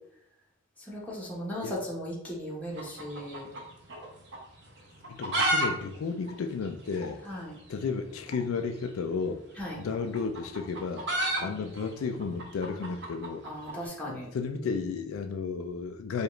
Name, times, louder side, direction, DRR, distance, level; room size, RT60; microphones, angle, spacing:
voice 1, 0.9-3.5 7.2-7.6 9.6-9.8 11.4-11.6 13.4-14.3, equal, 10° left, 1.0 m, -37 dB
Hens country ambience, 2.7-4.1 4.3-4.4 4.9-5.7 5.9-6.0 6.3-6.4 7.0-7.1 8.2-8.4 9.6-13.8, right 1 dB, 55° right, 0.8 m, -31 dB
voice 2, 5.1-7.2 7.7-9.4 9.8-11.1 11.4-13.4 14.1-16.2, left 5 dB, 80° left, 0.3 m, -33 dB
4.7 x 2.4 x 3.1 m
head